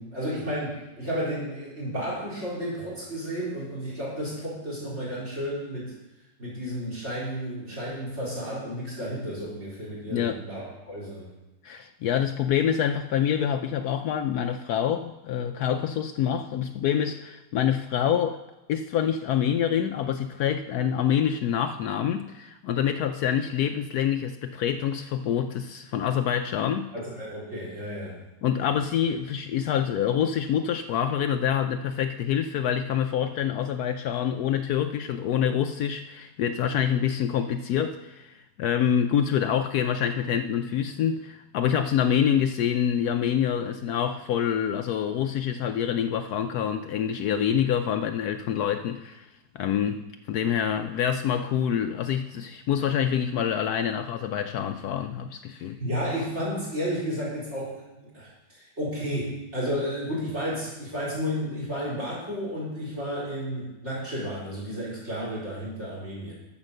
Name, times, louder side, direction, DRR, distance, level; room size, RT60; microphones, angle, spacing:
voice 1, 0.0-5.9 6.4-11.3 26.9-28.2 28.6-28.7 55.6-66.3, equal, 40° right, -6 dB, 4.3 m, -32 dB
voice 2, 11.6-18.4 18.7-26.9 28.4-49.3 49.5-55.8, left 9 dB, 70° left, 7 dB, 1.0 m, -26 dB
13.0 x 5.3 x 6.6 m, 1.0 s
omnidirectional pair, 1.8 m